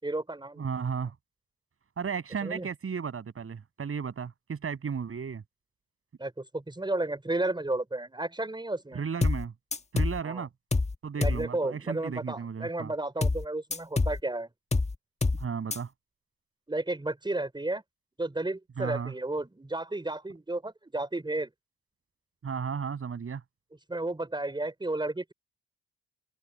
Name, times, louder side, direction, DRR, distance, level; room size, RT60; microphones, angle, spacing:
voice 1, 0.0-0.7 2.4-2.7 6.2-9.0 10.2-10.4 11.2-14.5 16.7-17.8 18.2-21.5 23.9-25.3, right 2 dB, 15° right, 5.5 m, -32 dB
voice 2, 0.6-1.1 2.0-5.4 8.9-9.5 9.9-10.5 11.0-12.9 15.3-15.9 18.8-19.1 22.4-23.4, right 6 dB, 45° right, 6.9 m, -34 dB
sound 1, 9.2-9.4 9.7-10.2 10.7-10.9 11.2-11.4 13.2-13.4 13.7-14.2 14.7-14.9 15.2-15.4 15.7-15.8, left 3 dB, 20° left, 1.8 m, -26 dB
hypercardioid pair, 45°, 31 cm